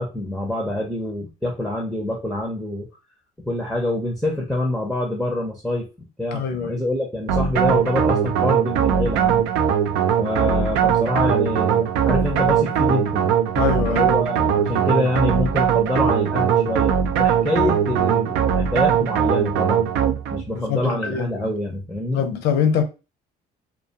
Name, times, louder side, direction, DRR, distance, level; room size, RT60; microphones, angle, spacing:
voice 1, 0.0-2.9 3.4-5.9 6.2-9.5 10.2-13.3 13.8-16.9 17.2-19.9 20.3-22.2, left 1 dB, ahead, 0.5 m, -26 dB
voice 2, 6.3-6.8 13.6-14.1 20.5-21.5 22.1-22.8, left 7 dB, 80° left, 0.6 m, -23 dB
sound 1, 7.3-20.5, right 8 dB, 80° right, 0.4 m, -20 dB
2.3 x 2.2 x 2.7 m
cardioid pair, 110°, 17 cm